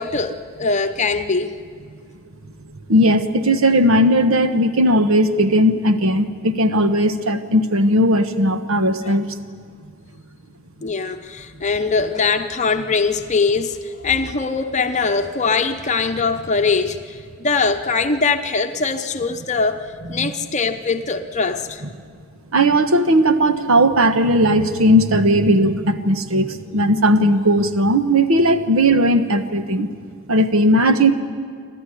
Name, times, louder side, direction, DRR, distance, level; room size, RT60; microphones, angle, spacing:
voice 1, 0.0-1.6 9.0-9.2 10.8-21.8, left 4 dB, 35° left, 7 dB, 0.8 m, -22 dB
voice 2, 2.9-9.3 20.1-20.3 22.5-29.9 30.3-31.1, equal, 80° right, 9 dB, 1.3 m, -17 dB
29.0 x 12.5 x 10.0 m, 2.1 s
head